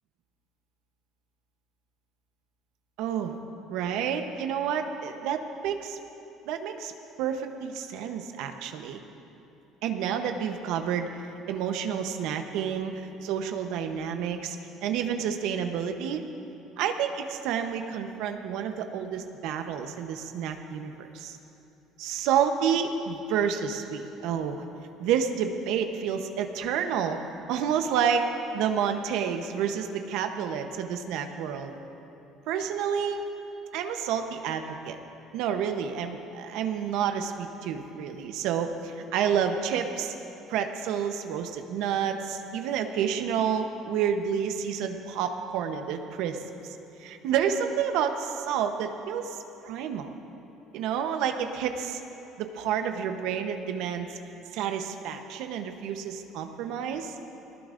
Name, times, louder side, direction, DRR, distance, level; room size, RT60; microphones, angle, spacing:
voice 1, 3.0-3.4 3.7-6.0 6.5-6.9 7.2-9.0 9.8-11.2 11.5-14.6 14.8-16.2 16.8-21.4 22.0-24.6 25.0-27.2 27.5-28.3 28.5-31.7 32.5-33.3 33.7-35.0 35.3-40.1 40.5-46.8 47.0-49.4 49.6-50.1 50.7-52.0 52.4-54.2 54.5-57.1, right 8 dB, 75° right, 6 dB, 0.8 m, -29 dB
21.0 x 18.5 x 2.6 m, 2.9 s
cardioid pair, 135°, 0 cm